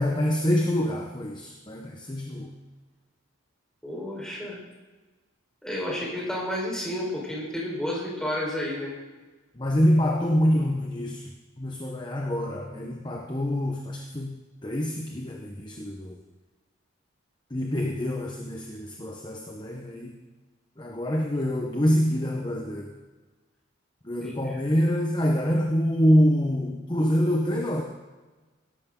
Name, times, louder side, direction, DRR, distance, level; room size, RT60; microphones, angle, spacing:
voice 1, 0.0-2.5 9.5-11.3 11.6-16.2 17.5-20.2 20.8-22.9 24.0-27.8, equal, 20° left, 1 dB, 1.0 m, -26 dB
voice 2, 3.8-4.6 5.6-8.9 24.2-24.5, left 1 dB, 5° left, -4 dB, 4.3 m, -31 dB
17.5 x 14.0 x 3.8 m, 1.3 s
head